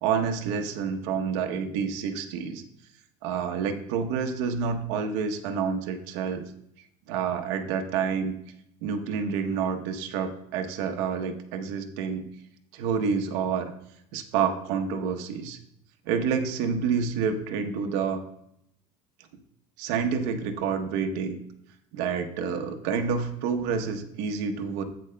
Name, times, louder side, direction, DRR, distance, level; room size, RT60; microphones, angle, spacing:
voice 1, 0.0-2.6 3.2-6.4 7.1-8.3 8.8-12.3 12.7-13.7 14.1-15.6 16.1-18.2 19.8-21.4 21.9-24.8, right 6 dB, 75° right, 5 dB, 0.9 m, -28 dB
10.5 x 8.5 x 2.2 m, 0.77 s
cardioid pair, 145°, 16 cm